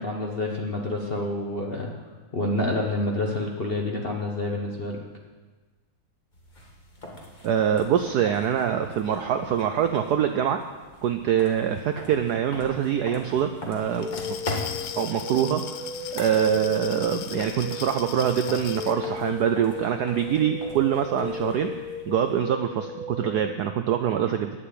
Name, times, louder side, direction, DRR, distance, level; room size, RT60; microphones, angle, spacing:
voice 1, 0.0-2.0 2.3-5.0, left 2 dB, 45° left, -1 dB, 0.8 m, -28 dB
sound 1, 6.3-22.4, left 1 dB, 25° left, 1.4 m, -42 dB
voice 2, 7.4-10.6 11.0-14.4 14.9-15.8 16.1-21.7 22.1-24.6, right 9 dB, 80° right, 7 dB, 0.9 m, -24 dB
Glass, 13.9-19.0, left 9 dB, 70° left, 1.2 m, -38 dB
sound 2, 14.0-23.5, left 4 dB, 85° left, 2.4 m, -36 dB
9.6 x 7.5 x 8.4 m, 1.3 s
omnidirectional pair, 2.3 m